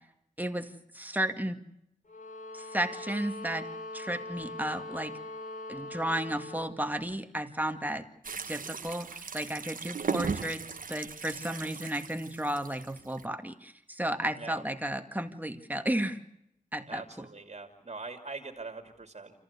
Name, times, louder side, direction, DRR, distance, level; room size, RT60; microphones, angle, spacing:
voice 1, 0.4-1.6 2.5-3.7 3.9-5.1 5.7-8.0 8.5-10.6 10.9-16.2 16.7-17.3, right 1 dB, 10° right, 7 dB, 2.1 m, -33 dB
sound 1, 2.1-6.8, left 2 dB, 65° left, 3.4 m, -42 dB
sound 2, 8.2-13.3, right 5 dB, 75° right, 1.1 m, -37 dB
voice 2, 16.9-19.4, right 3 dB, 50° right, 5 dB, 2.7 m, -42 dB
28.5 x 14.5 x 8.3 m, 0.79 s
wide cardioid pair, 70°, 14 cm